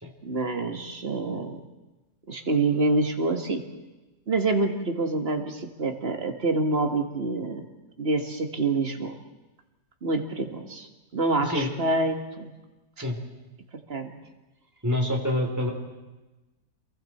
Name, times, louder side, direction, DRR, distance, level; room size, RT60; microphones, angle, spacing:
voice 1, 0.2-1.6 2.3-3.6 4.3-7.7 8.0-9.1 10.0-10.9 11.1-12.5 13.9-14.1, right 2 dB, 40° right, 4 dB, 1.9 m, -26 dB
voice 2, 14.8-15.7, left 1 dB, 10° right, 0 dB, 3.4 m, -26 dB
27.5 x 22.5 x 4.4 m, 1.1 s
omnidirectional pair, 1.8 m